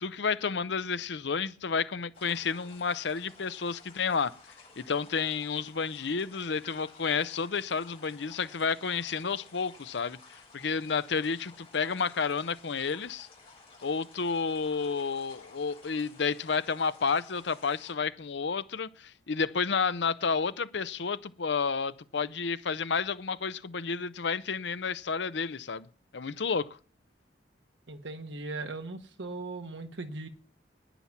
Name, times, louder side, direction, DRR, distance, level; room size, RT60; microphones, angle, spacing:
voice 1, 0.0-4.3 4.8-13.3 13.8-25.9 26.1-26.8, left 5 dB, 65° left, 0.7 m, -31 dB
sound 1, 2.1-17.9, left 4 dB, 30° left, 6.6 m, -55 dB
voice 2, 27.9-30.3, right 3 dB, 75° right, 1.4 m, -38 dB
10.0 x 9.6 x 7.3 m
head